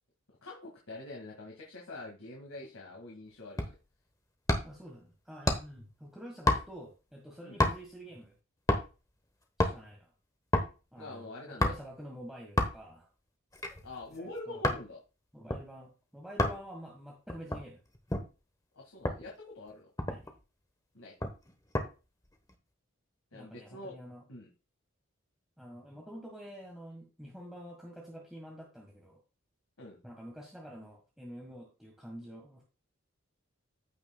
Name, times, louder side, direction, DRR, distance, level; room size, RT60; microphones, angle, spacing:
voice 1, 0.4-3.8 7.4-7.6 11.0-11.7 13.8-15.0 18.7-19.9 20.9-21.1 23.3-24.0 24.3-24.5 29.8-30.0, left 2 dB, 90° left, -1 dB, 2.0 m, -45 dB
sound 1, 3.6-3.9 4.5-4.9 5.5-5.8 6.5-6.9 7.6-8.0 8.7-9.0 9.4-9.8 10.5-10.7 11.6-12.0 12.6-12.9 13.5-14.9 15.5-15.6 16.4-16.6 17.3-18.3 19.0-19.3 19.7-19.8 20.0-20.4 21.2-21.9 22.2-22.5, left 1 dB, 15° left, 1.1 m, -30 dB
voice 2, 4.6-8.3 9.6-10.1 10.9-13.1 14.1-14.6 15.3-17.8 20.1-20.2 23.3-24.2 25.6-29.2 30.0-32.6, equal, ahead, -1 dB, 1.5 m, -48 dB
14.5 x 5.9 x 2.3 m, 0.30 s
head